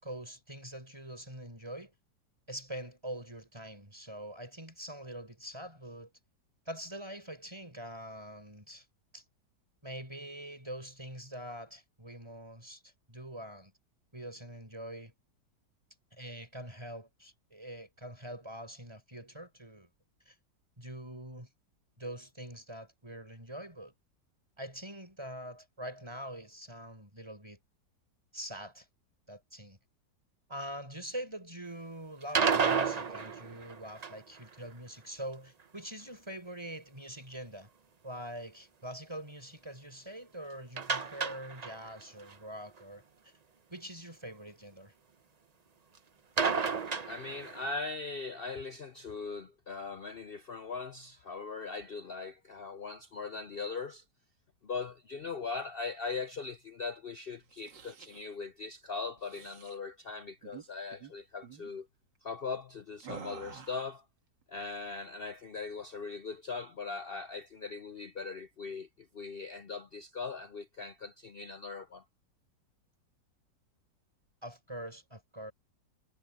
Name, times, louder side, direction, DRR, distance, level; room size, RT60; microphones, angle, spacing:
voice 1, 0.0-1.9 2.5-6.1 6.7-8.9 9.1-9.2 9.8-13.7 14.1-15.1 16.1-19.9 20.2-20.3 20.8-21.5 22.0-23.9 24.6-27.6 28.3-28.9 29.3-29.8 30.5-37.7 38.0-43.3 43.7-44.9 74.4-75.5, right 1 dB, 15° right, 4.9 m, -44 dB
sound 1, 32.2-34.4 40.8-42.0 42.3-42.4 42.8-42.9 46.4-47.7, right 5 dB, 40° right, 0.5 m, -31 dB
voice 2, 47.1-54.0 54.6-61.9 62.2-64.0 64.5-72.0, left 4 dB, 70° left, 0.5 m, -40 dB
sound 2, 57.4-58.3 59.2-59.8 60.4-60.7 60.9-61.1 61.4-61.7 63.0-64.0, right 7 dB, 90° right, 2.5 m, -49 dB
omnidirectional pair, 1.9 m